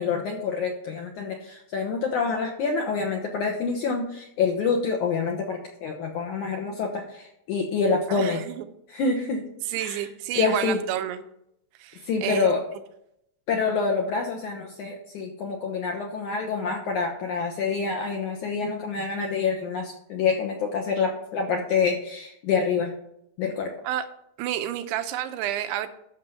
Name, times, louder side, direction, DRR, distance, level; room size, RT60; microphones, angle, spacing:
voice 1, 0.0-8.4 8.9-9.4 9.8-10.0 10.4-10.8 12.0-12.6 13.5-22.9 23.4-23.8, left 5 dB, 65° left, 2 dB, 2.0 m, -27 dB
voice 2, 8.1-8.6 9.7-11.2 11.8-12.5 23.8-24.1 24.4-25.9, right 11 dB, 85° right, 9 dB, 2.8 m, -30 dB
13.5 x 6.3 x 5.6 m, 0.76 s
omnidirectional pair, 4.9 m